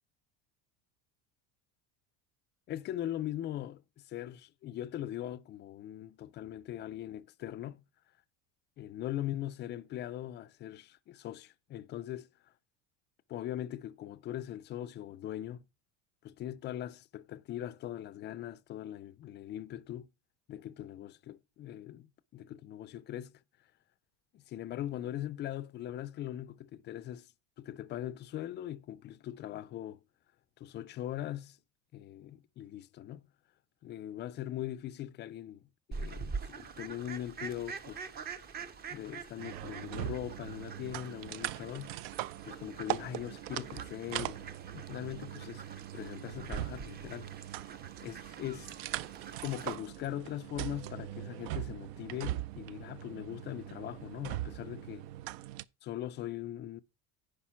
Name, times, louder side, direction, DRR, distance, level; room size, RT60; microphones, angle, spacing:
voice 1, 2.7-7.8 8.8-12.3 13.3-15.6 16.2-20.1 20.5-23.4 24.3-27.3 27.6-30.0 30.6-31.6 31.9-33.3 33.8-38.0 38.9-42.0 42.4-44.5 44.7-45.7 45.9-47.3 48.0-48.8 49.4-55.1 55.8-56.8, left 12 dB, 30° left, 0.4 m, -41 dB
Fowl, 35.9-49.8, right 5 dB, 25° right, 0.6 m, -45 dB
sound 1, 39.4-55.6, right 15 dB, 75° right, 0.5 m, -41 dB
10.0 x 5.1 x 5.7 m
cardioid pair, 150°, 39 cm